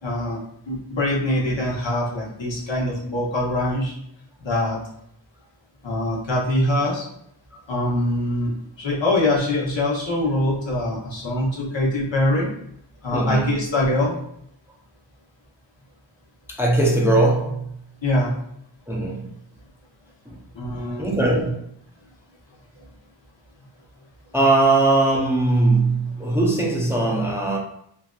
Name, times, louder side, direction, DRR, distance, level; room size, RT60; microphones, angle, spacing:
voice 1, 0.0-0.4 0.7-3.9 4.4-4.8 5.8-7.1 7.7-8.5 8.8-12.5 13.0-14.1 18.0-18.3 20.5-21.2, left 1 dB, 75° left, -4 dB, 1.0 m, -23 dB
voice 2, 13.1-13.6 16.5-17.7 18.9-19.3 20.3-20.4 21.0-21.6 24.3-27.6, right 2 dB, 5° right, -1 dB, 0.5 m, -20 dB
3.2 x 2.5 x 2.3 m, 0.72 s
wide cardioid pair, 50°, 45 cm